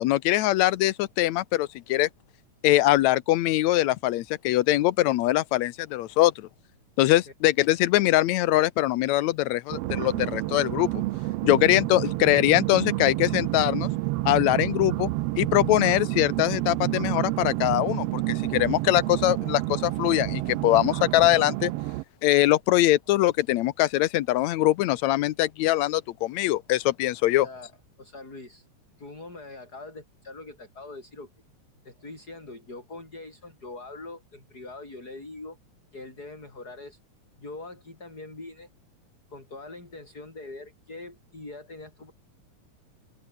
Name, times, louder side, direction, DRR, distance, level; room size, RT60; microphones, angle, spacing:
voice 1, 0.0-2.1 2.6-6.5 7.0-11.0 11.4-13.9 14.3-15.1 15.4-21.7 22.2-27.5, left 16 dB, 75° left, 2.0 m, -22 dB
sound 1, 9.7-22.0, right 19 dB, 85° right, 1.4 m, -29 dB
voice 2, 28.0-28.7 29.0-31.3 31.8-35.6 35.9-37.0 37.4-38.7 39.3-42.1, left 2 dB, 30° left, 7.6 m, -42 dB
open air
omnidirectional pair, 3.4 m